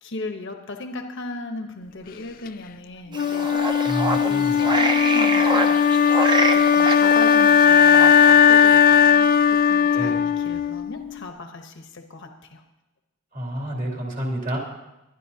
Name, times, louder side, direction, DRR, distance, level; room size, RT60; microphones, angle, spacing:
voice 1, 0.0-3.7 4.1-12.6, left 2 dB, 65° left, 4 dB, 1.0 m, -37 dB
Wind instrument woodwind instrument, 3.1-11.2, left 7 dB, 45° left, 0.3 m, -17 dB
sound 1, 3.1-8.3, right 2 dB, 20° right, 0.8 m, -26 dB
voice 2, 3.9-4.6 9.9-10.2 13.3-14.6, equal, 40° right, -1 dB, 2.5 m, -29 dB
21.5 x 12.0 x 2.8 m, 0.98 s
head